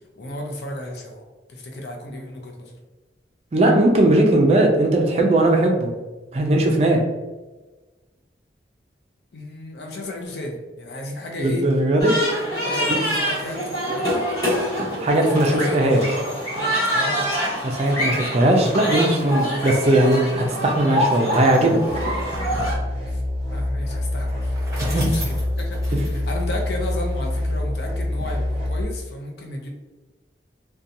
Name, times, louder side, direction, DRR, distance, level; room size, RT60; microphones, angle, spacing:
voice 1, 0.2-1.2 1.5-2.8 9.3-11.6 12.6-14.2 15.2-17.3 19.4-19.7 21.1-21.3 23.1-23.2 23.5-24.6 24.9-29.7, left 1 dB, 70° left, 1 dB, 0.5 m, -34 dB
voice 2, 3.5-5.9 6.3-7.0 11.4-12.1 12.8-13.0 15.0-16.0 17.6-20.2 20.6-21.8 22.5-22.7 24.9-25.1 25.9-26.0, right 1 dB, 35° right, 1 dB, 0.4 m, -18 dB
sound 1, 12.0-22.7, equal, 20° left, 0.9 m, -25 dB
sound 2, 21.9-28.8, left 1 dB, 50° left, 1.1 m, -26 dB
Bicycle, 24.1-27.3, right 1 dB, 15° right, 0.8 m, -37 dB
2.8 x 2.2 x 2.5 m, 1.2 s
head